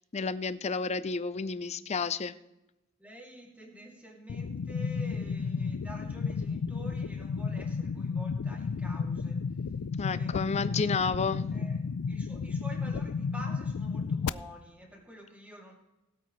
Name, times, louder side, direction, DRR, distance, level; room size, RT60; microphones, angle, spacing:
voice 1, 0.1-2.3 10.0-11.6, left 4 dB, 30° left, 15 dB, 0.5 m, -31 dB
voice 2, 3.0-9.7 10.1-10.8 11.5-11.8 12.1-15.7, equal, 5° right, -1 dB, 2.5 m, -48 dB
sound 1, 4.3-14.3, left 5 dB, 90° left, 0.4 m, -32 dB
19.5 x 8.6 x 3.2 m, 0.96 s
head